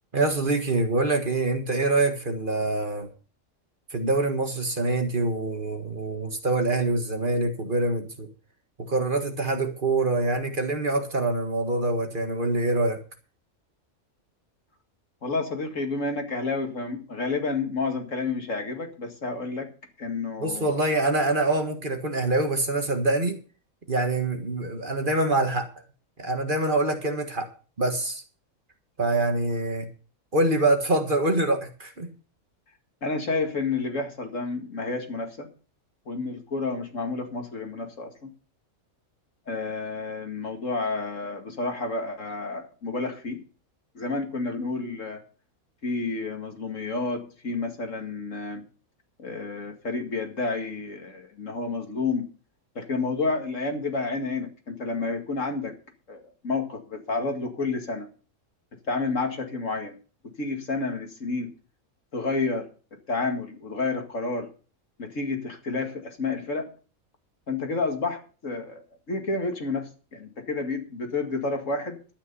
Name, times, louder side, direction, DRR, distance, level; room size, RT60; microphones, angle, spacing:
voice 1, 0.1-3.1 3.9-8.3 8.8-13.0 20.4-23.4 23.9-25.7 26.2-27.5 27.8-28.2 29.0-29.9 30.3-32.1, right 2 dB, 35° right, 5 dB, 1.8 m, -25 dB
voice 2, 15.2-19.7 20.0-20.9 33.0-35.5 36.1-38.3 39.5-43.4 43.9-45.2 45.8-48.6 49.2-52.3 52.8-55.8 56.1-58.1 58.9-60.0 60.4-61.5 62.1-62.7 63.1-64.5 65.0-66.7 67.5-72.0, left 3 dB, 60° left, 4 dB, 2.4 m, -30 dB
12.0 x 9.4 x 5.5 m, 0.37 s
omnidirectional pair, 1.5 m